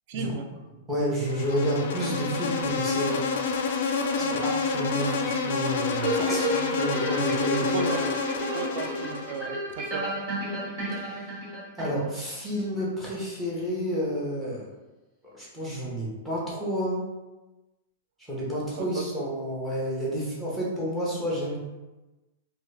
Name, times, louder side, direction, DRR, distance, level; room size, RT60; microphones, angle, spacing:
voice 1, 0.1-0.5 4.2-4.4 6.1-6.4 7.7-8.1 8.5-10.2 18.8-19.0, right 4 dB, 40° right, 5 dB, 0.3 m, -34 dB
voice 2, 0.9-3.2 4.2-7.9 10.9-11.4 11.8-14.7 15.3-17.0 18.3-21.6, equal, 5° right, -7 dB, 0.6 m, -30 dB
Insect, 1.2-9.5, left 4 dB, 50° left, 0.3 m, -28 dB
sound 1, 6.0-12.3 12.8-12.9, right 1 dB, 25° right, 1.0 m, -32 dB
2.9 x 2.3 x 3.2 m, 1.1 s
supercardioid pair, 180°, 0 cm